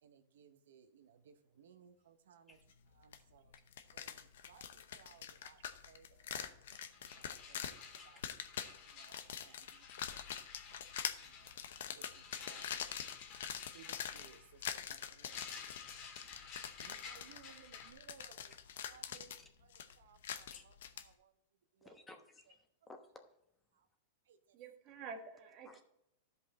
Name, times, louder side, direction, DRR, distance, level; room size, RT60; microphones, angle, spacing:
voice 1, 0.0-2.6 2.9-3.5 3.9-6.4 6.7-8.2 8.8-10.4 10.7-11.5 11.9-12.8 13.7-15.6 15.9-16.1 16.8-19.3 19.6-21.3 21.7-22.0 23.7-23.9 24.3-24.6, right 8 dB, 80° right, 0.8 m, -63 dB
sound 1, 3.1-3.2 3.5-21.1, left 9 dB, 75° left, 0.7 m, -45 dB
sound 2, 6.7-17.9, left 6 dB, 45° left, 1.7 m, -53 dB
voice 2, 21.8-23.3 25.6-25.8, left 2 dB, 15° left, 1.0 m, -58 dB
voice 3, 24.5-25.8, right 5 dB, 40° right, 1.5 m, -49 dB
12.5 x 5.3 x 4.2 m
hypercardioid pair, 125°, 0 cm